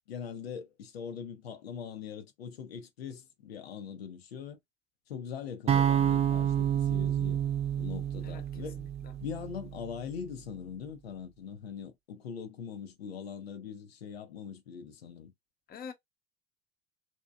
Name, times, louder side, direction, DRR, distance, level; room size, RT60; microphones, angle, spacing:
voice 1, 0.1-4.6 5.1-7.4 7.8-8.8 9.2-15.3, left 7 dB, 85° left, 0.5 m, -41 dB
sound 1, 5.7-9.8, right 10 dB, 20° right, 0.3 m, -29 dB
voice 2, 8.2-9.1 15.7-15.9, left 6 dB, 30° left, 0.7 m, -47 dB
2.7 x 2.1 x 2.2 m
hypercardioid pair, 70°, 30 cm